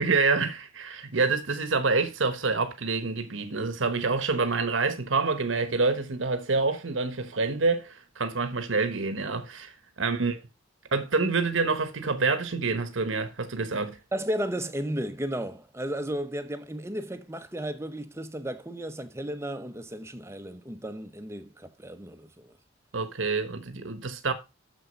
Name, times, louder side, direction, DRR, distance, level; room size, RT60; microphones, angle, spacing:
voice 1, 0.0-9.7 10.0-10.4 10.9-14.0 22.9-24.3, right 4 dB, 85° right, 1.1 m, -27 dB
voice 2, 14.1-22.5, right 1 dB, 15° right, 0.8 m, -34 dB
6.9 x 6.4 x 5.2 m
head